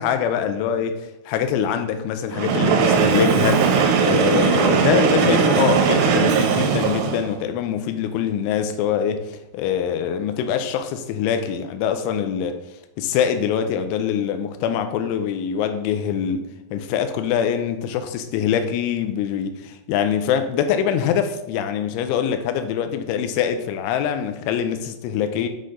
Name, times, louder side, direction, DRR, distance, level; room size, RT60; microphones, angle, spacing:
voice 1, 0.0-12.6 13.0-16.5 16.7-25.5, left 8 dB, 80° left, 2.9 m, -24 dB
Train, 2.3-7.3, right 5 dB, 90° right, 3.8 m, -18 dB
7.6 x 6.5 x 3.9 m
omnidirectional pair, 5.9 m